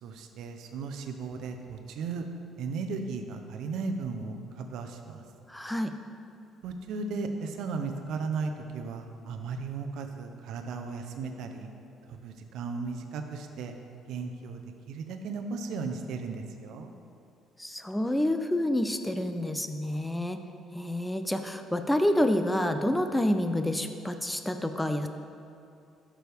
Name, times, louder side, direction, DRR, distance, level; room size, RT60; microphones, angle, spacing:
voice 1, 0.0-2.2 2.6-5.2 6.6-11.7 12.1-13.8 14.1-14.6 14.9-16.9, right 4 dB, 70° right, 5 dB, 0.7 m, -36 dB
voice 2, 5.5-5.9 17.6-20.4 20.7-25.1, left 1 dB, 5° left, 7 dB, 0.4 m, -28 dB
11.0 x 6.2 x 3.5 m, 2.6 s
cardioid pair, 130°, 0 cm